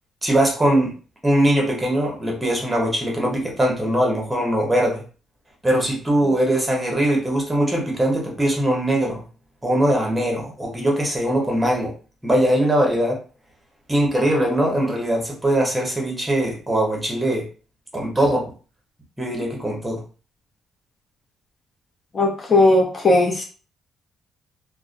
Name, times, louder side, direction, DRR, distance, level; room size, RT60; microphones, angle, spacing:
voice 1, 0.2-0.9 1.2-5.0 5.6-9.2 9.6-11.9 12.2-13.2 13.9-17.4 17.9-18.5 19.2-20.0, right 1 dB, 10° right, -1 dB, 1.0 m, -21 dB
voice 2, 22.1-23.4, left 2 dB, 45° left, 0 dB, 0.6 m, -17 dB
2.5 x 2.1 x 2.5 m, 0.37 s
cardioid pair, 90°, 0 cm